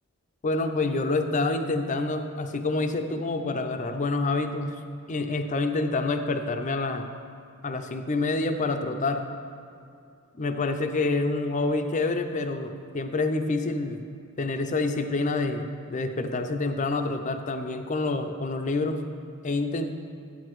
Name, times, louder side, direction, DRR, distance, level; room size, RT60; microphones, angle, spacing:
voice 1, 0.4-4.8 5.1-7.2 7.6-9.3 10.4-14.1 14.4-19.0 19.4-19.9, left 3 dB, 35° left, 7 dB, 0.5 m, -27 dB
11.5 x 8.4 x 3.1 m, 2.5 s
head